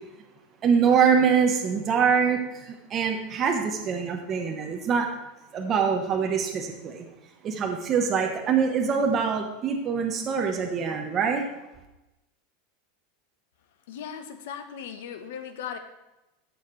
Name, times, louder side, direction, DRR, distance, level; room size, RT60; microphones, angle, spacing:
voice 1, 0.6-5.1 5.5-7.1 7.4-11.5, right 6 dB, 25° right, 2 dB, 1.0 m, -24 dB
voice 2, 13.9-15.8, left 8 dB, 80° left, 8 dB, 1.1 m, -37 dB
13.5 x 6.5 x 3.3 m, 0.97 s
supercardioid pair, 160°, 0 cm